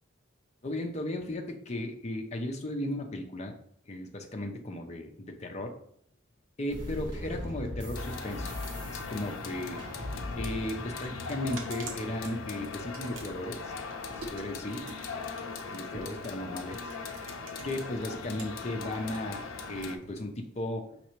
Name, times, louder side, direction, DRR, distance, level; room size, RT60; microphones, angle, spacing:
voice 1, 0.6-3.5 3.9-5.8 6.6-8.5 8.9-9.8 10.4-13.7 14.1-14.9 15.1-15.3 15.7-16.8 17.6-20.9, left 1 dB, 35° left, 4 dB, 0.6 m, -36 dB
sound 1, 6.7-12.2, left 1 dB, 60° right, 1.7 m, -40 dB
sound 2, 7.9-20.0, left 4 dB, 85° left, 0.5 m, -40 dB
sound 3, 10.4-18.4 18.8-20.7, right 3 dB, 85° right, 0.9 m, -47 dB
5.3 x 3.3 x 3.1 m, 0.65 s
head